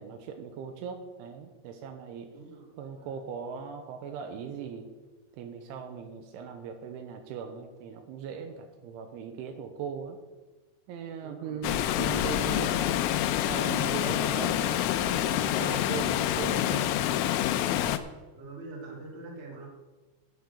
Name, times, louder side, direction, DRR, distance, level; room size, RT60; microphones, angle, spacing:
voice 1, 0.0-2.3 2.7-4.9 5.3-10.2 10.9-13.0 13.5-16.9, right 7 dB, 80° right, 6 dB, 3.1 m, -39 dB
voice 2, 2.3-2.7 3.0-3.1 11.2-11.6 18.3-19.7, right 2 dB, 20° right, -3 dB, 1.8 m, -44 dB
Water, 11.6-18.0, left 12 dB, 85° left, 3.1 m, -27 dB
9.6 x 8.3 x 7.0 m, 1.2 s
omnidirectional pair, 5.8 m